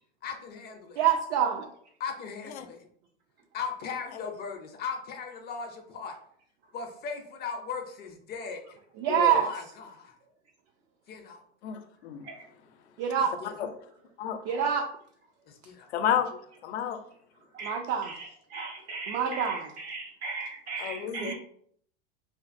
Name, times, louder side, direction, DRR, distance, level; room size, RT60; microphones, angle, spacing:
voice 1, 0.2-1.0 2.0-2.8 3.5-6.2 6.7-8.8 9.4-10.1 11.1-11.4 13.2-13.5 15.5-15.9, left 5 dB, 30° left, 4 dB, 0.4 m, -38 dB
voice 2, 1.0-1.7 9.0-9.5 13.0-13.3 14.4-14.9 17.6-18.1 19.1-19.7 21.2-21.3, right 9 dB, 60° right, 3 dB, 0.4 m, -26 dB
voice 3, 11.6-12.2 13.6-13.7 14.2-14.4 15.9-17.0 20.8-21.3, left 9 dB, 85° left, 8 dB, 0.5 m, -31 dB
voice 4, 18.0-21.3, right 4 dB, 80° right, -2 dB, 1.0 m, -38 dB
2.5 x 2.5 x 2.4 m, 0.64 s
hypercardioid pair, 110°, 32 cm